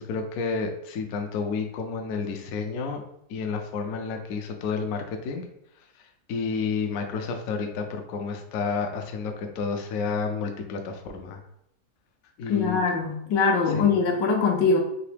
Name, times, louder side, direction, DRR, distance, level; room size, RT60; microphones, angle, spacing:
voice 1, 0.0-3.0 3.3-5.4 6.3-11.4 12.4-12.8 13.7-13.9, left 5 dB, 70° left, 5 dB, 0.9 m, -30 dB
voice 2, 12.5-14.8, left 5 dB, 85° left, 2 dB, 1.4 m, -22 dB
3.9 x 2.9 x 3.2 m, 0.77 s
omnidirectional pair, 1.8 m